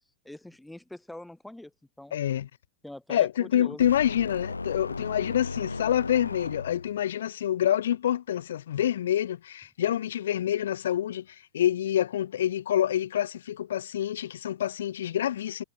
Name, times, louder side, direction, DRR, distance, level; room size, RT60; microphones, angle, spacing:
voice 1, 0.2-2.1 2.8-3.9, left 1 dB, 5° left, 2.5 m, -44 dB
voice 2, 2.1-2.5 3.1-15.6, left 11 dB, 60° left, 0.8 m, -27 dB
sound 1, 3.8-7.0, left 3 dB, 80° left, 1.3 m, -36 dB
figure-of-eight pair, 90°, 0 cm